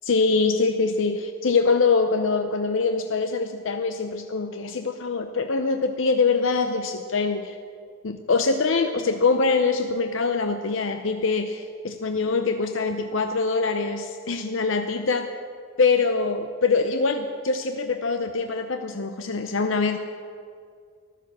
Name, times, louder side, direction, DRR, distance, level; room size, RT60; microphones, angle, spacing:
voice 1, 0.1-7.6 8.0-15.3 15.8-20.0, left 4 dB, 70° left, 7 dB, 0.7 m, -24 dB
14.0 x 12.5 x 7.4 m, 2.3 s
head